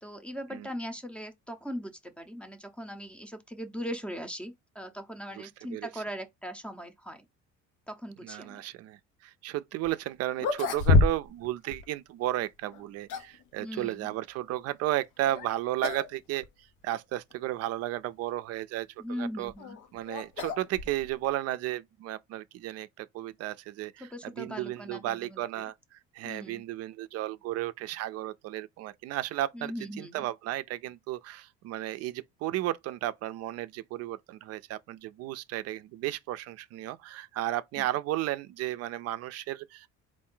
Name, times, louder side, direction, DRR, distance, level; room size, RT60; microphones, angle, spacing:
voice 1, 0.0-7.2 7.9-8.6 13.6-14.1 19.0-19.8 24.0-25.6 26.2-26.6 29.5-30.3 37.8-37.9, equal, 5° left, 0.6 m, -39 dB
voice 2, 5.3-6.0 8.2-16.5 16.8-19.5 19.9-39.9, right 14 dB, 55° right, 0.4 m, -34 dB
sound 1, 9.9-10.0 10.4-11.5 11.7-11.8 12.7-13.4 15.2-15.5 15.8-16.1 16.4-16.5 17.3-17.4 19.2-21.3, left 3 dB, 85° left, 0.8 m, -28 dB
4.3 x 2.6 x 3.7 m
cardioid pair, 160°, 30 cm